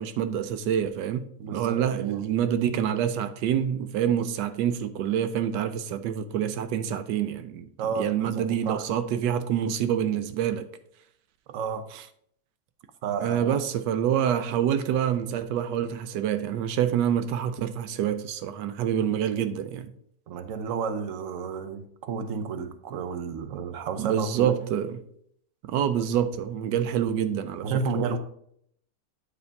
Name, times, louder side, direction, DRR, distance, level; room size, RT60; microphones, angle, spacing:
voice 1, 0.0-10.7 11.9-12.0 13.2-19.9 24.0-25.0 25.6-27.7 27.9-28.2, right 9 dB, 90° right, 1.2 m, -27 dB
voice 2, 1.4-2.2 7.8-8.8 11.5-11.9 13.0-13.6 20.3-24.6 27.6-28.2, right 5 dB, 60° right, 1.0 m, -31 dB
9.5 x 3.4 x 5.1 m
omnidirectional pair, 1.8 m